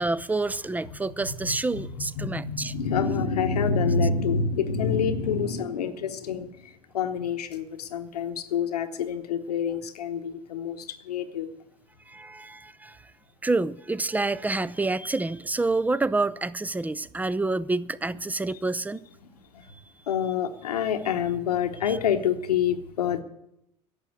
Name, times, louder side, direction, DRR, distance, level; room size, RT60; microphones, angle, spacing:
voice 1, 0.0-2.7 12.1-13.0 13.4-19.0 19.7-19.8 21.8-22.0, right 3 dB, 10° right, 0.5 m, -28 dB
voice 2, 2.0-11.5 19.5-19.6 20.1-23.2, left 6 dB, 90° left, 1.0 m, -27 dB
11.0 x 7.5 x 9.3 m
hypercardioid pair, 75°, 19 cm